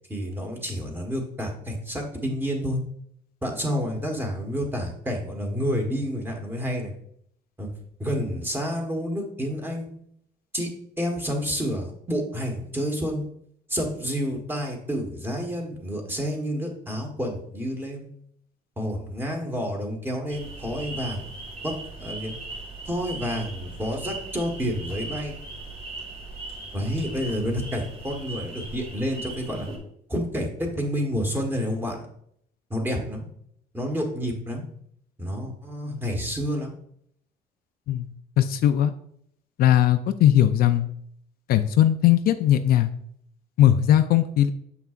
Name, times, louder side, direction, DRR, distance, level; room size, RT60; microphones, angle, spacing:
voice 1, 0.1-2.8 3.4-6.9 7.6-7.7 8.0-9.9 10.5-10.7 11.0-13.2 13.7-18.1 18.8-21.4 21.6-22.3 22.8-25.4 26.7-29.7 30.1-32.0 32.7-33.3 33.7-34.6 35.2-36.7, equal, 10° right, 1 dB, 1.4 m, -29 dB
sound 1, 20.3-29.8, right 2 dB, 35° right, 2.3 m, -38 dB
voice 2, 38.4-38.9 39.6-40.9 41.5-42.9 43.6-44.5, left 11 dB, 65° left, 9 dB, 0.4 m, -19 dB
6.9 x 5.7 x 2.5 m, 0.69 s
cardioid pair, 110°, 17 cm